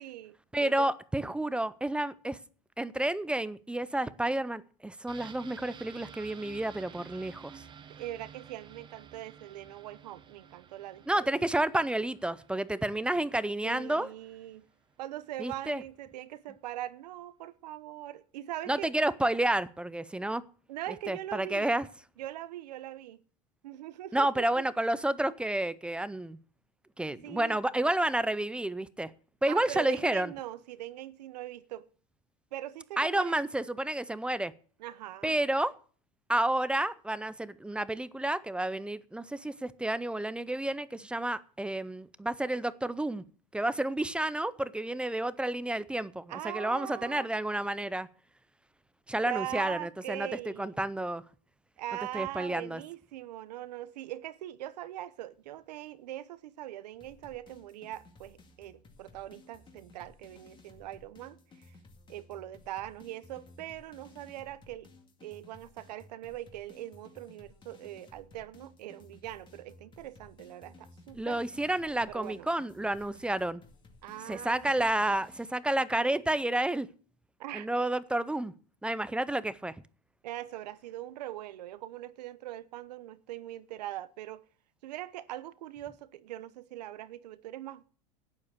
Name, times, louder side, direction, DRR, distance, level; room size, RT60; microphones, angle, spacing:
voice 1, 0.0-0.9 7.8-11.4 13.6-14.6 15.0-18.9 20.7-21.8 22.2-23.2 23.6-24.6 27.1-27.6 29.5-31.9 32.5-33.4 34.8-35.4 46.3-47.3 49.3-50.8 51.8-61.8 62.1-64.9 65.2-71.4 72.1-72.5 74.0-74.9 77.4-77.7 80.2-84.4 84.8-87.8, right 14 dB, 90° right, 1.0 m, -41 dB
voice 2, 0.5-2.4 2.8-7.6 11.1-14.1 15.4-15.8 18.7-20.4 21.1-21.9 24.1-26.4 27.0-29.1 29.4-30.3 33.0-34.5 35.2-35.7 36.3-43.3 43.5-48.1 49.1-50.3 50.6-51.2 52.1-52.8 71.1-73.6 74.3-76.9 77.5-78.5 78.8-79.7, right 1 dB, 5° right, 0.5 m, -30 dB
sound 1, 5.1-14.7 15.0-15.1, right 7 dB, 25° right, 0.9 m, -52 dB
sound 2, 57.0-75.5, left 2 dB, 25° left, 2.2 m, -57 dB
12.0 x 9.7 x 6.7 m
supercardioid pair, 135°, 20 cm